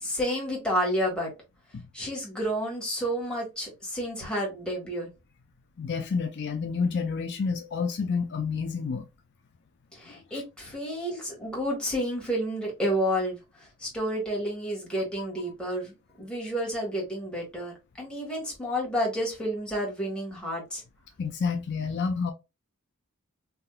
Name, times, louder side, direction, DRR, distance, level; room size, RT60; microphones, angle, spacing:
voice 1, 0.0-1.3 1.9-5.1 9.9-20.8, equal, 5° left, 1.6 m, -30 dB
voice 2, 5.8-9.1 10.1-10.4 15.2-15.3 21.2-22.3, left 5 dB, 50° left, 0.4 m, -29 dB
3.4 x 2.8 x 2.2 m
head